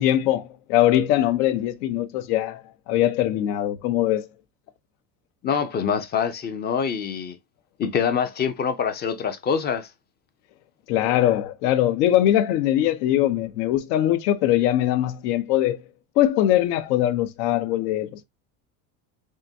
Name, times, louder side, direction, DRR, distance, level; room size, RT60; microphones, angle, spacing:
voice 1, 0.0-4.3 10.9-15.8 16.2-18.2, left 12 dB, 80° left, 0.9 m, -22 dB
voice 2, 5.4-7.4 7.8-9.9, left 7 dB, 25° left, 0.4 m, -25 dB
3.7 x 3.4 x 2.6 m
supercardioid pair, 135°, 46 cm